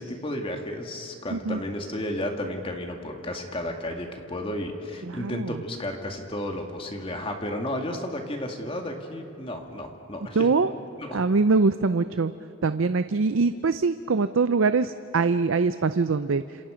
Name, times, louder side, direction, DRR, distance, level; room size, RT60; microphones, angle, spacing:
voice 1, 0.0-10.5 11.0-11.2, left 1 dB, 25° left, 3 dB, 2.2 m, -33 dB
voice 2, 5.1-5.6 10.4-10.7 11.1-12.3 12.6-16.4, right 4 dB, 70° right, 12 dB, 0.5 m, -23 dB
29.5 x 27.5 x 5.1 m, 2.9 s
head